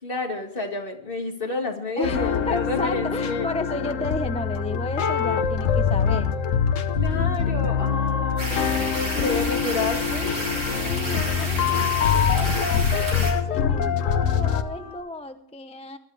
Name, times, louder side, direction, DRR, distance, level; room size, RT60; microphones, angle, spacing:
voice 1, 0.0-3.5 6.9-10.4, left 3 dB, 45° left, 2 dB, 2.2 m, -29 dB
sound 1, 2.0-14.6, left 7 dB, 75° left, 1.3 m, -24 dB
voice 2, 2.0-6.3 10.7-16.0, left 1 dB, 5° left, 8 dB, 0.6 m, -33 dB
sound 2, 7.4-15.0, left 1 dB, 40° right, 5.3 m, -46 dB
sound 3, 8.4-13.3, equal, 55° right, 6.1 m, -30 dB
23.0 x 12.0 x 3.4 m, 0.72 s
omnidirectional pair, 1.3 m